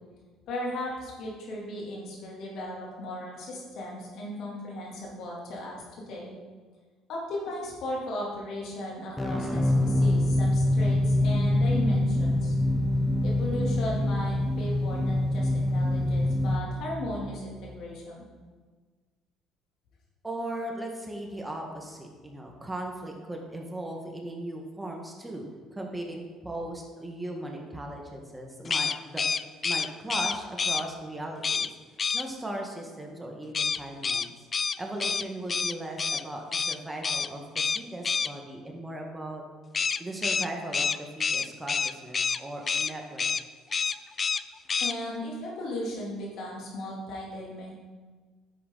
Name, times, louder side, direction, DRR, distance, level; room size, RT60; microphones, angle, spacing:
voice 1, 0.5-6.4 7.1-12.5 13.2-18.3 44.8-47.7, left 1 dB, 65° left, -3 dB, 3.3 m, -36 dB
sound 1, 9.2-17.9, left 1 dB, 5° left, 1.2 m, -25 dB
voice 2, 20.2-29.2 29.6-31.7 32.1-34.3 34.8-39.4 40.0-43.3, right 1 dB, 15° right, 1 dB, 1.8 m, -38 dB
sound 2, 28.6-30.8 31.4-31.7 32.0-32.2 33.5-36.2 36.5-36.8 37.0-37.3 37.6-38.3 39.7-42.4 42.7-42.9 43.2-43.4 43.7-44.4 44.7-44.9, left 5 dB, 35° left, 0.3 m, -28 dB
10.0 x 7.9 x 4.2 m, 1.4 s
supercardioid pair, 75°, 0 cm